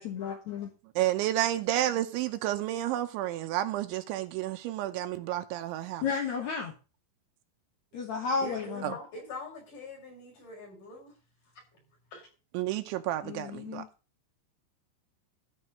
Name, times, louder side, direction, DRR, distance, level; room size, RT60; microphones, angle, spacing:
voice 1, 0.0-0.7 6.0-6.7 7.9-8.9 13.2-13.9, left 5 dB, 65° left, 1.8 m, -33 dB
voice 2, 1.0-6.0 8.8-8.9 12.5-13.8, right 13 dB, 80° right, 3.0 m, -30 dB
voice 3, 8.4-11.1 11.7-11.8 12.1-12.3, left 2 dB, 40° left, 6.9 m, -43 dB
13.5 x 5.4 x 6.6 m
omnidirectional pair, 5.5 m